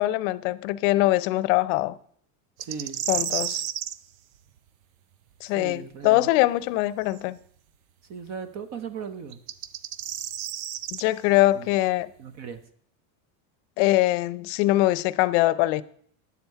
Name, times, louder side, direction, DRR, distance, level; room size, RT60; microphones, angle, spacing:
voice 1, 0.0-2.0 3.1-3.6 5.4-7.4 10.9-12.1 13.8-15.8, left 17 dB, 65° left, 0.6 m, -22 dB
voice 2, 2.6-3.0 5.6-6.3 8.1-9.4 11.5-11.7 12.2-12.6, right 6 dB, 40° right, 0.8 m, -37 dB
sound 1, 2.6-4.0 7.1-7.2 9.3-11.0, right 11 dB, 85° right, 0.6 m, -31 dB
9.5 x 7.1 x 4.6 m
supercardioid pair, 145°, 41 cm